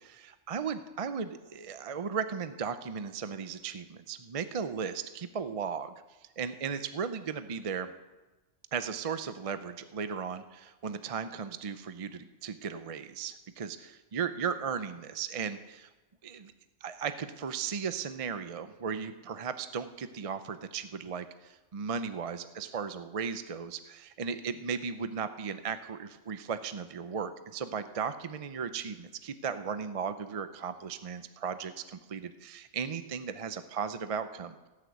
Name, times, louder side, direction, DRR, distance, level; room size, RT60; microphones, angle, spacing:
voice 1, 0.0-5.9 6.4-7.9 8.7-15.9 16.2-16.5 16.8-34.7, right 6 dB, 40° right, 11 dB, 0.5 m, -36 dB
17.0 x 6.7 x 7.9 m, 1.1 s
omnidirectional pair, 1.3 m